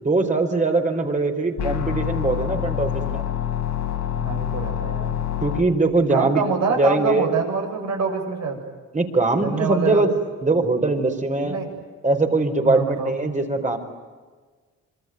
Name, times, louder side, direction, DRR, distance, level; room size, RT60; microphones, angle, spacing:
voice 1, 0.0-3.2 5.4-6.4 6.7-7.3 8.9-10.1 10.4-11.6 12.0-13.8, right 3 dB, 25° right, 4 dB, 4.9 m, -21 dB
sound 1, 1.6-5.6, left 11 dB, 75° left, 4.7 m, -26 dB
voice 2, 4.1-5.1 6.1-8.6 9.4-10.0 11.4-11.7 12.6-13.1, right 5 dB, 65° right, 3 dB, 7.7 m, -25 dB
26.5 x 24.0 x 9.3 m, 1.4 s
cardioid pair, 90°, 30 cm